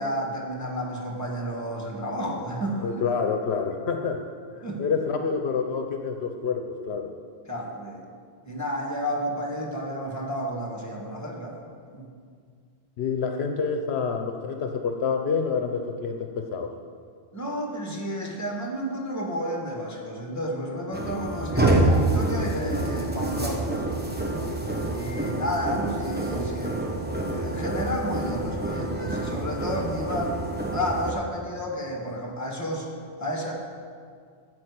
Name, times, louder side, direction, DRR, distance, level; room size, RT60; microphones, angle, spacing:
voice 1, 0.0-3.0 3.9-4.1 4.6-4.8 7.4-8.0 8.4-11.6 11.9-12.1 17.3-23.8 24.9-26.9 27.2-30.4 30.7-32.9 33.2-33.5, equal, 15° left, -1 dB, 1.6 m, -31 dB
voice 2, 2.8-4.2 4.8-7.1 13.0-16.7, left 5 dB, 75° left, 5 dB, 0.9 m, -27 dB
sound 1, 20.9-31.1, right 2 dB, 10° right, 1.0 m, -27 dB
12.0 x 4.8 x 8.2 m, 2.1 s
omnidirectional pair, 1.1 m